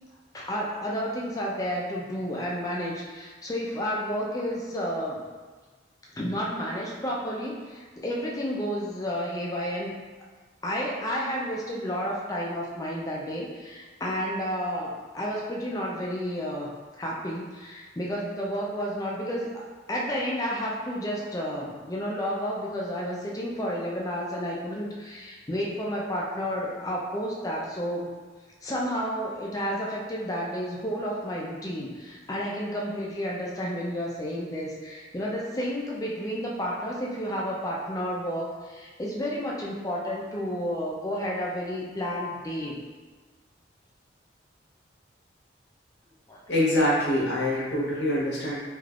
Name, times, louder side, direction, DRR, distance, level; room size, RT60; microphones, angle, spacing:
voice 1, 0.3-5.2 6.1-9.9 10.6-16.7 17.0-19.6 19.9-28.1 28.6-42.8 46.3-46.4, equal, 20° left, -3 dB, 0.4 m, -31 dB
voice 2, 46.5-48.6, left 1 dB, 75° left, -6 dB, 0.9 m, -24 dB
3.3 x 2.5 x 2.4 m, 1.4 s
head